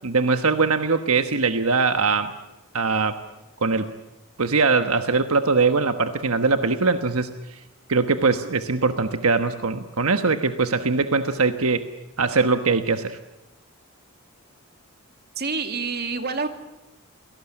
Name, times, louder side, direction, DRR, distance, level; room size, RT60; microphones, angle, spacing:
voice 1, 0.0-2.3 2.7-3.2 3.6-3.9 4.4-7.6 7.9-11.8 12.2-13.2, right 4 dB, 80° right, 8 dB, 1.3 m, -21 dB
voice 2, 15.4-16.5, right 4 dB, 45° right, 6 dB, 2.5 m, -27 dB
29.0 x 18.0 x 10.0 m, 0.96 s
head